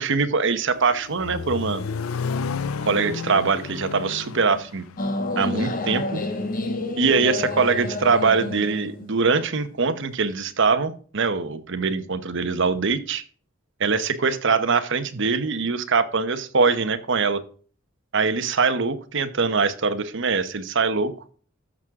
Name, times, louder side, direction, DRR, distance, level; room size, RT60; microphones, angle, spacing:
voice 1, 0.0-1.8 2.8-4.8 5.4-6.2 7.0-13.2 13.8-17.4 18.1-21.1, right 4 dB, 60° right, 10 dB, 1.0 m, -23 dB
Accelerating revving vroom, 0.6-6.6, left 5 dB, 80° left, 0.5 m, -32 dB
sound 1, 5.0-10.1, left 2 dB, 40° left, 1.3 m, -29 dB
13.5 x 6.3 x 3.7 m, 0.42 s
head